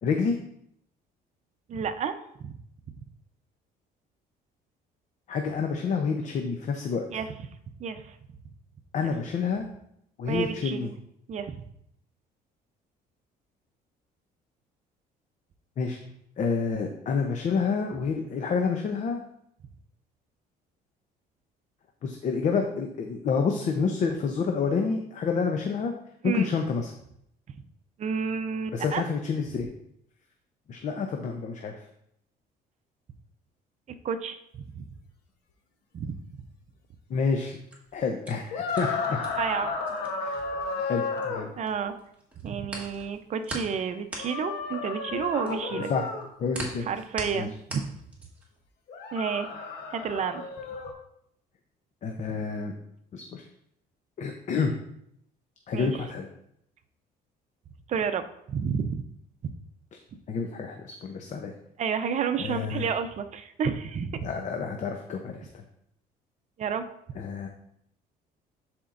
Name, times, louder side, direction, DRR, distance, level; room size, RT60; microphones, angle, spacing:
voice 1, 0.0-0.3 5.3-7.1 8.9-9.7 10.2-10.9 15.8-16.0 16.4-19.2 22.0-25.9 26.2-26.9 28.7-29.7 30.7-31.8 37.1-37.6 37.9-39.2 40.2-40.4 40.8-41.5 45.7-46.1 46.4-46.9 47.3-47.5 52.0-52.7 53.1-53.4 54.2-54.7 55.7-56.3 60.3-61.5 62.4-62.9 64.2-65.6 67.2-67.5, left 5 dB, 45° left, 4 dB, 0.7 m, -28 dB
voice 2, 1.7-2.6 7.1-7.3 7.8-8.2 9.0-9.1 10.3-10.9 11.3-11.6 26.2-26.5 28.0-29.0 34.0-34.8 35.9-36.2 39.4-39.7 41.6-41.9 42.4-45.9 46.8-47.8 49.1-49.5 49.9-50.4 55.7-56.0 57.9-59.0 61.8-64.3 66.6-66.8, right 6 dB, 45° right, 8 dB, 0.6 m, -30 dB
sound 1, 37.7-41.7 42.0-48.6, right 1 dB, 10° right, 1.6 m, -41 dB
sound 2, 38.5-41.5 44.2-46.3 48.9-50.9, left 4 dB, 85° left, 1.0 m, -32 dB
11.0 x 4.4 x 2.5 m, 0.74 s
cardioid pair, 110°, 17 cm